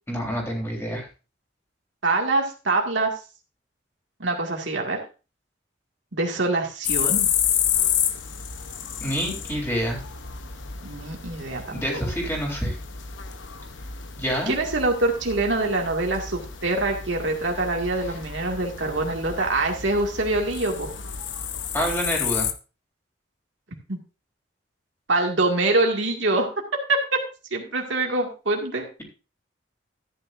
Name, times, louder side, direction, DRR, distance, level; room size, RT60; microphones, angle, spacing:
voice 1, 0.1-1.1 9.0-10.0 11.7-12.8 14.2-14.6 21.7-22.5, equal, 15° left, 0 dB, 3.7 m, -27 dB
voice 2, 2.0-3.1 4.2-5.0 6.1-7.3 10.8-11.6 11.9-12.0 14.5-20.9 23.9-24.0 25.1-27.2 27.5-28.9, right 2 dB, 80° right, 1 dB, 2.1 m, -24 dB
sound 1, 6.8-22.5, left 8 dB, 85° left, 0.9 m, -30 dB
13.5 x 9.7 x 2.6 m, 0.32 s
head